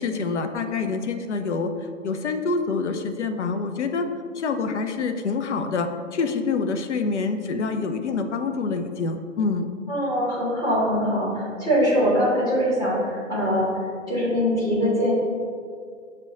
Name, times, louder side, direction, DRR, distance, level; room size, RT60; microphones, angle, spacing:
voice 1, 0.0-1.7 2.0-4.1 4.3-9.7, left 4 dB, 65° left, 7 dB, 0.5 m, -26 dB
voice 2, 9.9-15.1, equal, 10° left, -8 dB, 0.9 m, -23 dB
6.5 x 2.2 x 3.6 m, 2.1 s
figure-of-eight pair, 125°, 38 cm